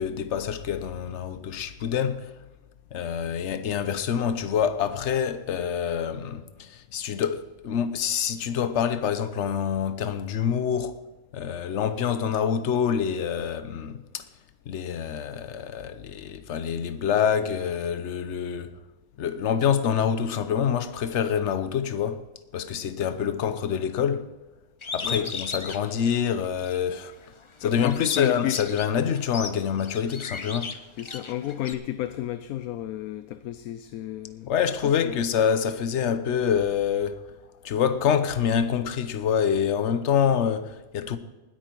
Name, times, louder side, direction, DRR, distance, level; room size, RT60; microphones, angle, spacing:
voice 1, 0.0-2.3 2.9-10.9 11.3-14.2 14.7-18.7 19.2-22.2 22.5-24.3 24.9-27.1 27.6-30.7 34.5-37.2 37.6-41.2, left 8 dB, 60° left, 1.1 m, -26 dB
Bird, 24.8-26.8 27.2-31.7, left 4 dB, 35° left, 0.5 m, -36 dB
voice 2, 25.0-25.3 27.6-28.6 30.9-34.5 34.8-35.2, left 13 dB, 90° left, 1.1 m, -32 dB
19.5 x 9.0 x 4.6 m
omnidirectional pair, 1.5 m